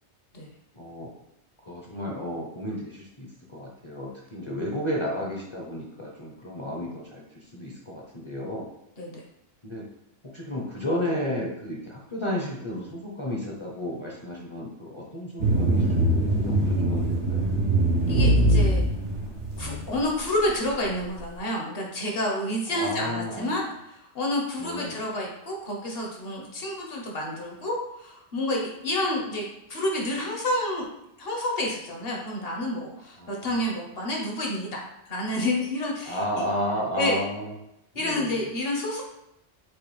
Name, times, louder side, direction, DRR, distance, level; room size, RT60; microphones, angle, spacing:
voice 1, 0.7-1.1 1.6-7.2 7.5-8.7 9.6-9.8 10.3-17.6 22.7-23.6 24.6-25.0 33.2-33.5 36.1-37.5 38.0-38.4, equal, 30° left, -3 dB, 0.6 m, -32 dB
sound 1, 15.4-20.0, right 1 dB, 90° right, 1.3 m, -22 dB
voice 2, 18.1-18.8 19.6-30.9 31.2-36.4 37.0-37.2 37.9-39.0, left 1 dB, 60° left, 0 dB, 1.1 m, -29 dB
6.2 x 2.4 x 3.1 m, 0.83 s
omnidirectional pair, 1.2 m